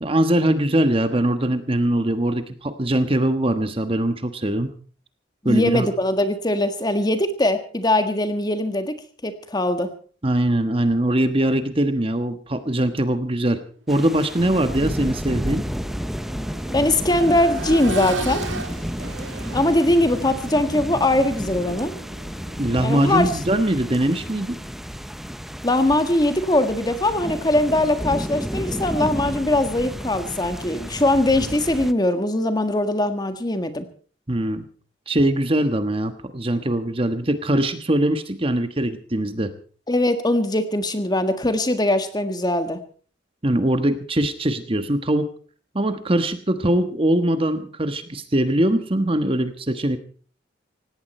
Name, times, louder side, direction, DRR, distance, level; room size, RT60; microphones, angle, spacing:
voice 1, 0.0-4.7 5.4-5.9 10.2-13.6 13.9-15.7 22.6-24.6 34.3-34.6 35.1-39.5 43.4-45.3 45.7-50.0, right 1 dB, 30° right, 9 dB, 1.3 m, -22 dB
voice 2, 5.4-8.9 9.2-9.9 16.7-18.4 19.5-21.9 22.8-23.3 25.6-33.8 39.9-42.8, left 1 dB, 20° left, 9 dB, 1.6 m, -21 dB
sound 1, 13.9-31.9, equal, ahead, 0.7 m, -31 dB
Accelerating revving vroom, 15.4-24.8 26.5-26.6, right 2 dB, 85° right, 2.0 m, -37 dB
18.0 x 17.0 x 4.3 m, 0.42 s
head